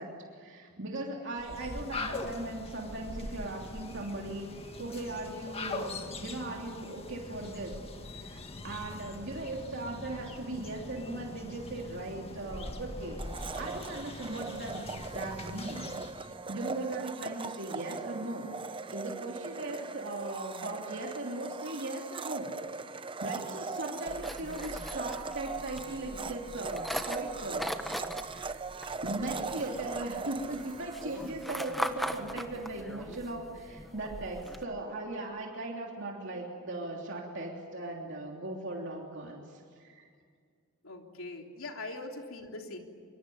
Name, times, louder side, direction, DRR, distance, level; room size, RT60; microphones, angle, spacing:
voice 1, 0.0-7.8 8.1-22.5 22.9-27.7 28.1-28.6 29.0-40.0, right 2 dB, 60° right, -1 dB, 3.2 m, -38 dB
sound 1, 1.4-16.3, left 2 dB, 30° left, 1.9 m, -42 dB
Domestic sounds home sounds, 13.2-32.0, right 4 dB, 25° right, 0.7 m, -40 dB
sound 2, 24.1-34.6, equal, ahead, 1.3 m, -40 dB
voice 2, 40.8-42.8, left 2 dB, 70° left, 2 dB, 3.5 m, -42 dB
25.5 x 24.5 x 9.4 m, 2.1 s
head